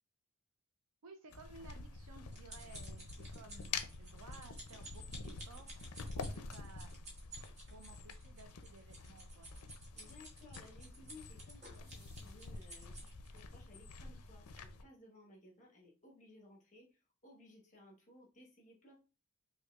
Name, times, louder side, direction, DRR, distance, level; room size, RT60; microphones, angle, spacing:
voice 1, 1.0-5.7 6.1-6.9 7.7-9.5, right 3 dB, 80° right, 5 dB, 0.5 m, -57 dB
sound 1, 1.3-14.8, left 4 dB, 85° left, 0.5 m, -48 dB
sound 2, 1.7-13.4 14.0-14.2 14.6-14.7, right 1 dB, 30° right, 1.1 m, -54 dB
voice 2, 9.9-18.9, left 2 dB, 35° left, -2 dB, 1.2 m, -60 dB
sound 3, 11.5-13.3 15.5-15.6, left 2 dB, 15° left, 1.5 m, -70 dB
5.3 x 2.3 x 2.3 m, 0.32 s
head